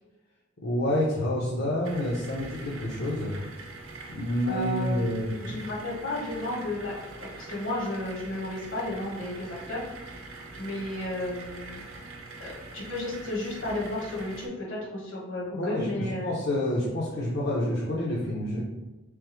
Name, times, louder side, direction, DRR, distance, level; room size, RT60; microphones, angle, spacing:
voice 1, 0.6-3.3 4.1-5.6 15.5-18.6, left 1 dB, 55° left, -5 dB, 0.6 m, -28 dB
Motor on Boiler., 1.8-14.5, right 3 dB, 90° right, 0.6 m, -44 dB
voice 2, 4.5-5.1 5.4-10.3 10.6-11.8 12.4-16.4, left 1 dB, 70° left, -4 dB, 1.4 m, -33 dB
3.5 x 3.3 x 3.1 m, 1.1 s
head